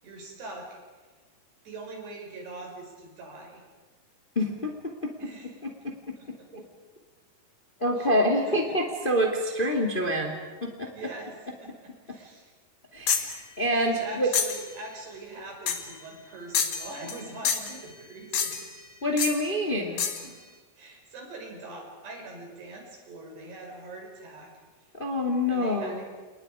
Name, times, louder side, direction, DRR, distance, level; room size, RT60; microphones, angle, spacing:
voice 1, 0.0-0.8 1.7-3.6 5.2-5.5 6.2-6.5 8.0-8.2 8.5-8.8 9.5-9.6 9.9-10.0 10.9-12.5 13.8-18.8 20.2-20.4 20.8-24.5 25.5-26.1, right 2 dB, 85° right, 0 dB, 7.7 m, -43 dB
voice 2, 4.4-4.7 5.8-5.9 6.5-6.6 7.8-10.9 12.9-14.3 19.0-20.1 24.9-26.0, equal, 15° left, 2 dB, 2.0 m, -26 dB
sound 1, 13.1-13.4 14.3-14.7 15.7-15.9 16.5-17.2 17.5-17.8 18.3-18.7 19.2-19.4 20.0-20.3, left 7 dB, 55° left, 2.7 m, -28 dB
30.0 x 28.5 x 5.0 m, 1.3 s
omnidirectional pair, 4.6 m